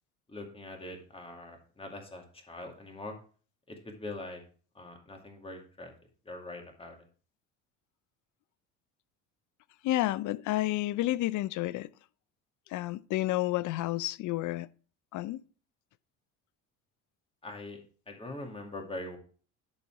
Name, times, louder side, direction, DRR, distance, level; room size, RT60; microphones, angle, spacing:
voice 1, 0.3-3.2 3.7-4.4 4.7-5.9 6.3-7.0 17.4-17.8 18.1-19.2, left 2 dB, 15° left, 2.2 m, -43 dB
voice 2, 9.8-11.9 12.7-14.7 15.1-15.4, left 16 dB, 55° left, 0.5 m, -30 dB
11.0 x 4.1 x 4.7 m
supercardioid pair, 85°, 37 cm